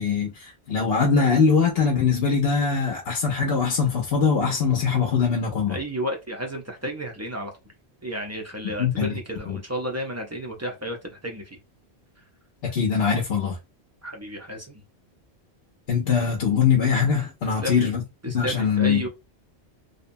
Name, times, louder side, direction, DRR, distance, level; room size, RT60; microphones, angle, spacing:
voice 1, 0.0-5.8 8.6-9.2 9.5-9.6 12.6-13.6 15.9-18.0 18.3-19.1, left 6 dB, 65° left, 0.8 m, -22 dB
voice 2, 5.7-7.5 8.0-11.0 11.2-11.4 14.0-14.8 17.4-17.9 18.2-19.1, equal, 25° right, 0.4 m, -32 dB
2.7 x 2.0 x 2.6 m
omnidirectional pair, 1.1 m